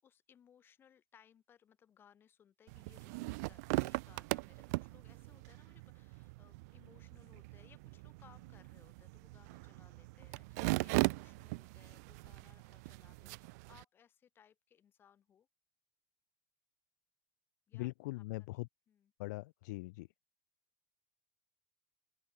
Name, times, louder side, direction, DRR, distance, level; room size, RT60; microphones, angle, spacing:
voice 1, 0.0-15.5 17.7-17.9 18.2-18.6 18.9-19.1, left 9 dB, 25° left, 7.6 m, -66 dB
sound 1, 2.7-13.8, right 26 dB, 65° right, 0.5 m, -39 dB
voice 2, 17.7-18.7 19.2-20.1, left 22 dB, 75° left, 1.6 m, -41 dB
open air
cardioid pair, 170°, 9 cm